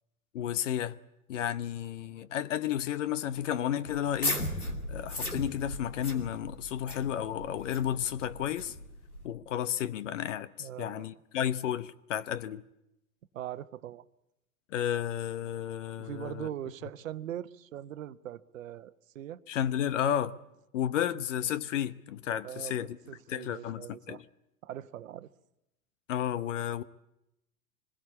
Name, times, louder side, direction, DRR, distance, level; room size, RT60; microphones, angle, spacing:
voice 1, 0.3-1.0 1.3-4.4 4.9-8.7 9.2-12.6 14.7-16.5 19.5-20.3 20.7-23.0 23.3-24.2 26.1-26.8, left 10 dB, 55° left, 1.0 m, -32 dB
sound 1, 3.9-9.3, left 1 dB, 85° left, 2.6 m, -37 dB
voice 2, 10.6-11.1 13.3-14.0 16.0-19.4 22.4-24.2 24.6-25.3, right 11 dB, 60° right, 1.1 m, -41 dB
25.0 x 21.0 x 8.6 m
figure-of-eight pair, 85°, 43 cm